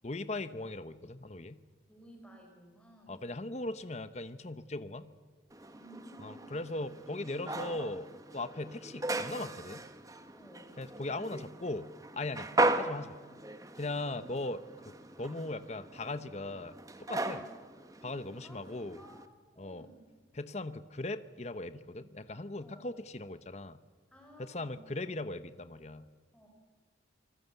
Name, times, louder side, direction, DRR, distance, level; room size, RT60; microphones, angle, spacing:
voice 1, 0.0-1.6 3.1-5.1 6.2-9.8 10.8-12.5 12.8-13.2 13.8-16.7 17.0-17.4 18.0-19.0 19.6-19.9 20.3-23.8 24.4-26.0, left 2 dB, 35° left, 12 dB, 0.9 m, -39 dB
voice 2, 1.9-3.2 5.6-6.5 10.3-10.7 12.4-12.6 14.0-14.3 17.2-17.5 18.4-19.2 19.5-20.1 22.6-22.9 24.1-24.9 26.3-26.5, equal, 5° left, 1 dB, 4.3 m, -55 dB
sound 1, 5.5-19.3, right 2 dB, 20° right, 1.3 m, -38 dB
27.5 x 20.0 x 8.1 m, 1.5 s
head